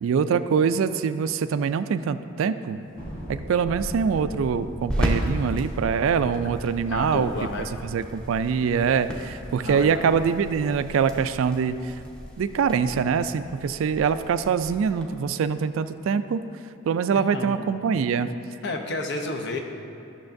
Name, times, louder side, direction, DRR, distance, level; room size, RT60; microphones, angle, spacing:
voice 1, 0.0-2.8 3.3-7.3 7.9-12.0 12.4-16.4 16.9-18.3, right 6 dB, 75° right, 12 dB, 0.3 m, -24 dB
sound 1, 2.8-15.0, equal, 5° left, 0.7 m, -35 dB
Thunder, 3.0-13.6, equal, 40° left, 1.7 m, -41 dB
voice 2, 6.9-7.7 9.6-10.1 17.1-17.7 18.6-19.6, left 2 dB, 55° left, 3 dB, 0.7 m, -31 dB
12.0 x 6.6 x 2.6 m, 2.7 s
head